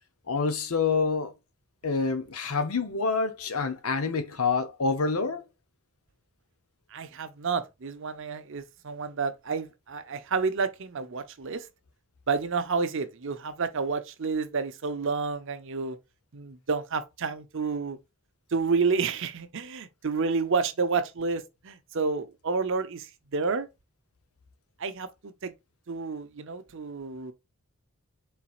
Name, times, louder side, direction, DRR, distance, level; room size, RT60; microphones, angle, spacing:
voice 1, 0.3-1.3 1.8-5.4, left 4 dB, 75° left, 0.8 m, -27 dB
voice 2, 6.9-11.7 12.3-16.0 16.3-18.0 18.5-23.7 24.8-25.5 25.9-27.3, right 4 dB, 60° right, 0.7 m, -30 dB
4.4 x 4.0 x 2.4 m
head